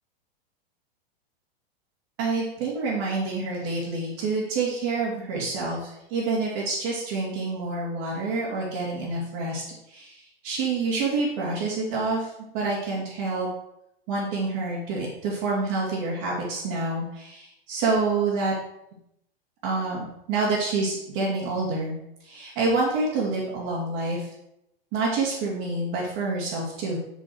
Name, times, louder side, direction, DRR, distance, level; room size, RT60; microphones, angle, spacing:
voice 1, 2.2-13.5 14.1-18.5 19.6-21.9 22.2-24.3 24.9-27.0, right 3 dB, 45° right, -6 dB, 2.9 m, -27 dB
7.6 x 6.9 x 4.7 m, 0.82 s
hypercardioid pair, 130°, 30 cm